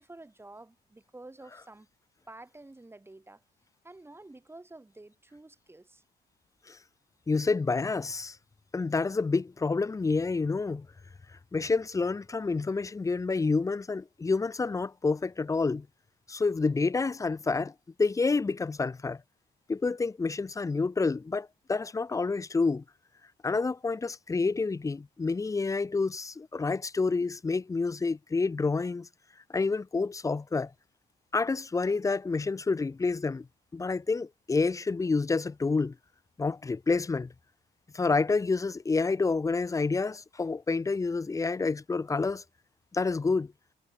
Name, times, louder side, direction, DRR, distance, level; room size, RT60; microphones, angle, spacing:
voice 1, 0.0-1.9 2.3-3.4 3.8-6.0, right 2 dB, 10° right, 1.9 m, -50 dB
voice 2, 7.3-8.4 8.7-10.9 11.5-15.9 16.3-17.7 18.0-19.2 19.7-22.8 23.4-29.1 29.5-30.7 31.3-33.5 33.7-36.0 36.4-37.3 37.9-42.4 42.9-43.5, left 4 dB, 15° left, 0.4 m, -28 dB
cardioid pair, 90°, 20 cm